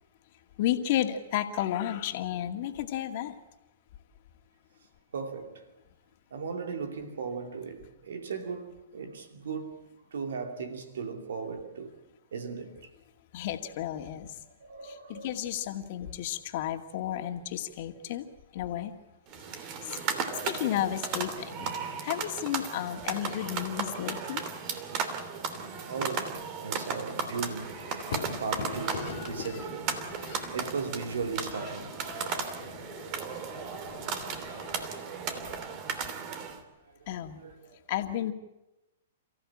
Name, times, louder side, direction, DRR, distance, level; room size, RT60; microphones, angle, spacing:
voice 1, 0.6-3.4 13.3-14.4 14.8-18.2 18.5-18.9 19.8-20.0 20.4-21.7 22.0-24.4 28.9-29.5 30.2-30.5 34.3-34.7 37.1-37.4 37.9-38.3, left 12 dB, 55° left, 2.2 m, -33 dB
voice 2, 5.1-5.6 6.3-12.0 12.3-12.9 14.4-15.4 25.9-27.8 28.4-30.0 30.5-32.0 34.3-35.0 36.8-37.8, right 5 dB, 75° right, 2.7 m, -37 dB
sound 1, 19.3-36.6, right 6 dB, 40° right, 2.9 m, -35 dB
sound 2, 27.6-34.9, left 6 dB, 70° left, 2.5 m, -43 dB
29.5 x 15.0 x 8.8 m
hypercardioid pair, 125°, 0 cm